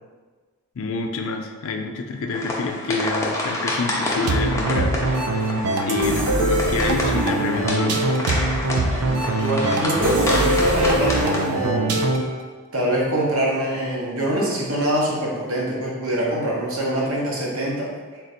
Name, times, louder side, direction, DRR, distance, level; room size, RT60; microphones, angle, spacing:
voice 1, 0.8-5.0 5.8-8.1, left 3 dB, 65° left, 5 dB, 0.4 m, -27 dB
sound 1, 2.3-11.4, left 1 dB, 15° left, 0.6 m, -28 dB
sound 2, 4.3-12.4, right 2 dB, 85° right, 0.5 m, -22 dB
voice 2, 9.0-12.0 12.7-18.2, right 1 dB, 70° right, -4 dB, 1.1 m, -24 dB
3.9 x 2.6 x 4.2 m, 1.4 s
head